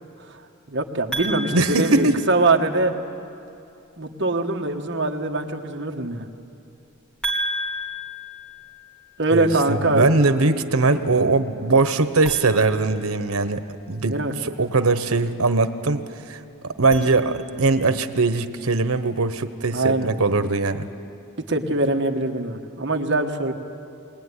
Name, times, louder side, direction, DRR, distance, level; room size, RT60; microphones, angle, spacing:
voice 1, 0.7-2.9 4.0-6.3 9.2-10.1 14.1-14.3 19.7-20.1 21.5-23.5, right 2 dB, 55° right, 3 dB, 1.5 m, -23 dB
sound 1, 1.1-2.8 7.2-9.3 12.1-13.7 16.7-17.9, right 1 dB, 5° left, 2.8 m, -33 dB
voice 2, 1.5-2.2 9.3-16.4 16.8-20.9, right 3 dB, 90° right, 10 dB, 1.2 m, -21 dB
22.0 x 19.5 x 9.8 m, 2.7 s
head